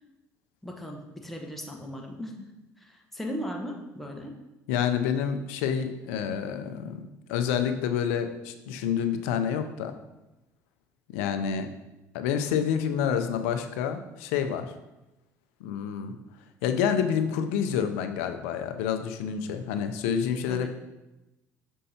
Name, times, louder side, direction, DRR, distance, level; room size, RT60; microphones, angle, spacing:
voice 1, 0.6-2.5 2.8-4.3 20.5-20.7, equal, 5° left, 1 dB, 1.1 m, -37 dB
voice 2, 4.7-9.9 11.1-11.7 12.1-14.7 15.6-16.1 16.6-20.7, left 8 dB, 80° left, 8 dB, 0.5 m, -28 dB
6.3 x 5.4 x 2.8 m, 0.98 s
hypercardioid pair, 65°, 8 cm